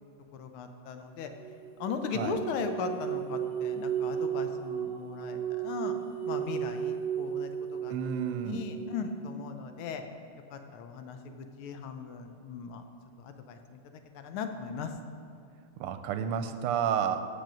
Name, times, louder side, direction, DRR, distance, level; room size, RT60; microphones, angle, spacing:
voice 1, 0.3-1.3 1.8-6.0 6.2-7.9 8.4-10.0 10.5-12.8 13.2-13.8 14.1-14.9, left 5 dB, 80° left, 7 dB, 1.5 m, -38 dB
sound 1, 1.3-9.2, right 9 dB, 40° right, 0.9 m, -35 dB
voice 2, 7.9-8.6 15.8-17.3, right 8 dB, 90° right, 9 dB, 1.5 m, -31 dB
8.2 x 6.5 x 6.1 m, 2.6 s
omnidirectional pair, 2.4 m